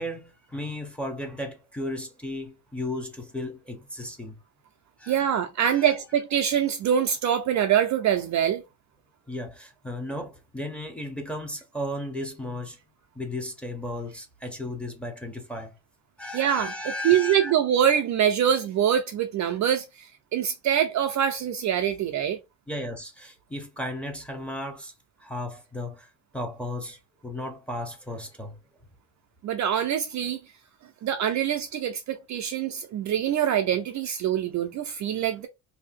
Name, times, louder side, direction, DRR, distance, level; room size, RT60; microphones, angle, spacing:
voice 1, 0.0-4.4 5.0-5.3 5.6-5.9 9.3-12.8 13.1-15.7 16.2-17.5 22.7-24.9 25.2-26.1 26.3-27.0 27.2-28.6, left 1 dB, 5° left, 0.8 m, -35 dB
voice 2, 5.1-8.6 16.3-22.4 29.4-30.4 31.0-35.5, right 9 dB, 45° right, 0.4 m, -24 dB
2.8 x 2.7 x 4.0 m
cardioid pair, 150°, 41 cm